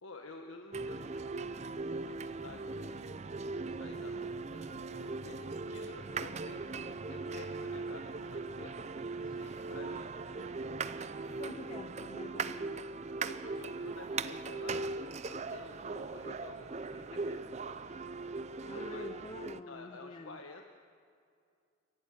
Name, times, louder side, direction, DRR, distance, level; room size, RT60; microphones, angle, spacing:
voice 1, 0.0-3.1 3.6-5.4 5.7-6.6 7.1-10.6 11.1-11.4 13.2-14.9 15.2-18.1 18.7-19.1 19.7-20.7, left 3 dB, 85° left, 3 dB, 1.3 m, -51 dB
sound 1, 0.7-19.6, right 3 dB, 35° right, 0.5 m, -39 dB
sound 2, 5.6-19.1, right 4 dB, 80° right, 3.5 m, -64 dB
voice 2, 11.2-13.0 18.7-20.4, left 2 dB, 25° left, 11 dB, 0.5 m, -47 dB
29.0 x 13.5 x 9.0 m, 2.3 s
head